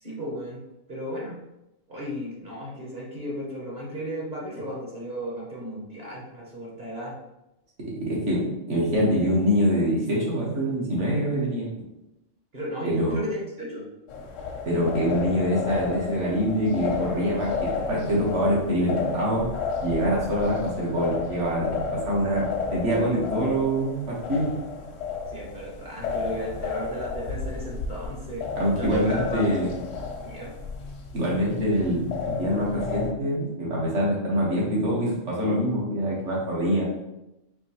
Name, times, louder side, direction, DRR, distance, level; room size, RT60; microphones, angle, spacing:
voice 1, 0.0-0.6 0.9-1.4 1.9-7.2 12.5-13.9 25.3-28.5 28.7-29.6 30.2-30.5, equal, 45° right, -4 dB, 1.0 m, -35 dB
voice 2, 8.0-11.7 12.8-13.2 14.6-19.5 19.8-24.5 28.6-29.8 31.1-36.8, equal, 70° right, -5 dB, 1.6 m, -25 dB
sound 1, 14.1-33.1, left 5 dB, 85° left, 1.0 m, -32 dB
4.3 x 3.1 x 2.8 m, 0.91 s
omnidirectional pair, 1.3 m